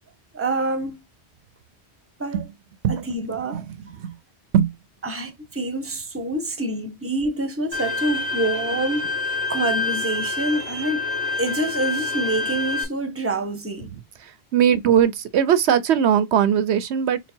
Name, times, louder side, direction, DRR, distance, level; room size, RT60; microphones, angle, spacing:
voice 1, 0.3-1.0 2.2-2.4 2.9-4.0 5.0-11.1 11.4-13.9, right 2 dB, 15° right, 0.9 m, -27 dB
voice 2, 3.4-4.2 4.5-4.7 14.2-17.2, right 9 dB, 80° right, 0.9 m, -20 dB
Bowed string instrument, 7.7-12.8, left 3 dB, 70° left, 1.3 m, -27 dB
4.0 x 2.1 x 4.4 m
omnidirectional pair, 1.1 m